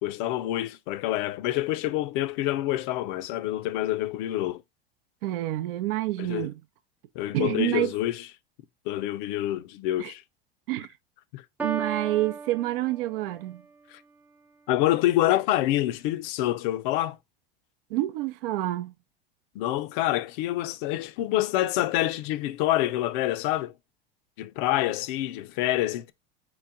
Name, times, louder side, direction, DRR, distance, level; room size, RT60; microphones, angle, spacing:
voice 1, 0.0-4.6 6.2-6.5 7.2-8.3 8.9-10.2 11.3-11.4 13.9-14.0 14.7-17.2 19.6-23.7 24.4-26.1, left 14 dB, 55° left, 0.5 m, -27 dB
voice 2, 5.2-6.5 7.3-7.9 10.0-10.1 10.7-10.9 11.6-13.6 17.9-18.9, right 16 dB, 65° right, 0.6 m, -28 dB
Piano, 11.6-13.6, right 5 dB, 5° right, 0.4 m, -35 dB
4.3 x 3.1 x 3.5 m
hypercardioid pair, 85°, 29 cm